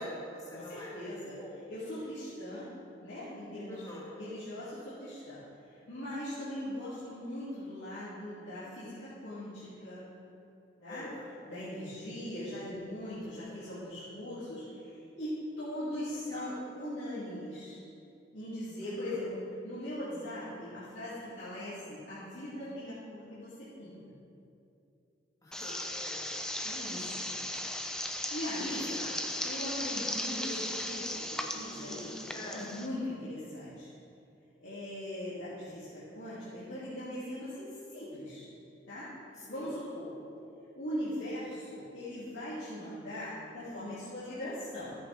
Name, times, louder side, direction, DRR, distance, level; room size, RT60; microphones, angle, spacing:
voice 1, 0.0-1.0 1.3-1.6 3.7-4.2 10.8-11.3 16.1-16.6 18.8-19.2 25.4-26.4 26.9-27.2 28.7-29.2 32.3-32.7 39.4-39.7, left 1 dB, 20° left, -5 dB, 1.7 m, -46 dB
voice 2, 0.5-1.4 1.7-2.7 3.0-3.9 4.2-10.1 10.8-11.1 11.4-17.8 18.3-24.1 26.6-27.3 28.1-28.9 29.4-33.9 34.6-38.5 38.9-39.1 39.5-40.1 40.8-45.0, left 1 dB, 75° left, -12 dB, 2.7 m, -40 dB
sound 1, 25.5-32.9, left 1 dB, 5° left, 0.5 m, -37 dB
14.0 x 8.4 x 3.5 m, 2.7 s
head